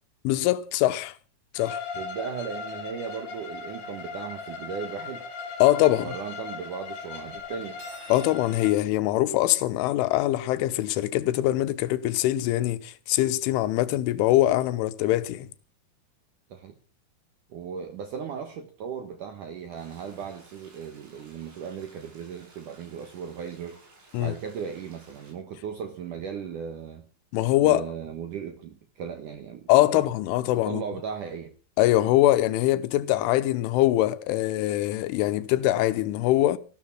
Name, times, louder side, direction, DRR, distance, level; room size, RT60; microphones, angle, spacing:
voice 1, 0.3-1.1 1.6-1.8 5.6-6.1 8.1-15.5 24.1-24.3 27.3-27.9 29.7-30.8 31.8-36.6, left 15 dB, 90° left, 3.4 m, -23 dB
Bowed string instrument, 1.6-8.7, left 4 dB, 50° left, 4.1 m, -38 dB
voice 2, 1.9-5.2 6.0-7.8 16.5-16.7 17.5-23.8 24.2-27.1 27.6-30.0 30.6-31.5, right 7 dB, 70° right, 2.0 m, -37 dB
Cutlery silverware, 7.6-8.4, right 1 dB, 35° right, 7.1 m, -47 dB
sound 1, 19.8-25.3, right 3 dB, 85° right, 8.8 m, -56 dB
15.0 x 12.5 x 6.0 m
omnidirectional pair, 5.5 m